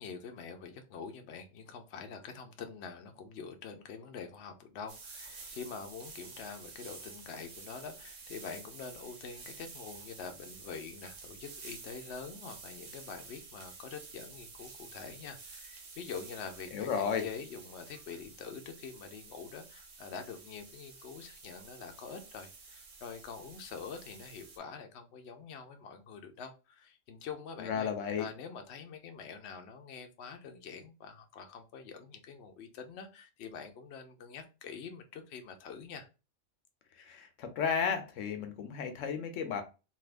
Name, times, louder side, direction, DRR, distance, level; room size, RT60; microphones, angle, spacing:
voice 1, 0.0-27.9 28.2-36.1, left 5 dB, 65° left, 0.9 m, -45 dB
sound 1, 4.9-24.6, right 4 dB, 80° right, 1.2 m, -51 dB
voice 2, 16.7-17.2 27.6-28.2 36.9-39.6, left 7 dB, 90° left, 1.0 m, -33 dB
3.4 x 2.8 x 2.4 m
omnidirectional pair, 1.3 m